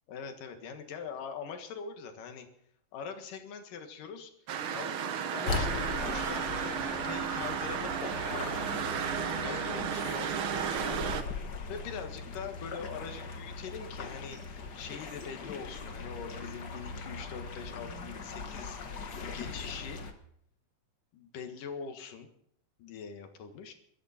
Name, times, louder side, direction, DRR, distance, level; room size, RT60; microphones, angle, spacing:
voice 1, 0.1-2.5 2.9-4.3 4.7-8.0 8.2-9.0 9.4-11.2 11.7-18.8 19.2-20.0 21.1-22.3 22.8-23.7, left 6 dB, 75° left, 6 dB, 3.2 m, -43 dB
sound 1, 4.5-11.2, right 8 dB, 80° right, 1.1 m, -33 dB
sound 2, 5.5-20.1, left 4 dB, 55° left, 1.2 m, -40 dB
Whispering, 8.4-11.2 13.3-14.0 14.3-14.4 14.8-15.9 17.8-19.9, equal, 30° right, 8.4 m, -52 dB
20.5 x 13.5 x 4.3 m, 0.68 s
omnidirectional pair, 3.8 m